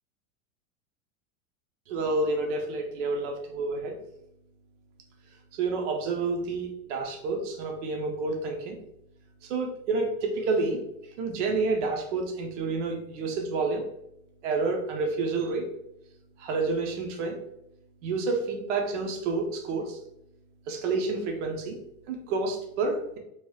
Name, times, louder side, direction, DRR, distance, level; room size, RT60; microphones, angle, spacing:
voice 1, 1.9-4.0 5.5-8.8 9.4-10.8 11.2-13.8 14.4-15.7 16.4-17.4 18.0-20.0 20.7-21.8 22.1-23.2, right 3 dB, 55° right, 2 dB, 0.6 m, -29 dB
3.1 x 2.9 x 2.2 m, 0.80 s
supercardioid pair, 175°, 42 cm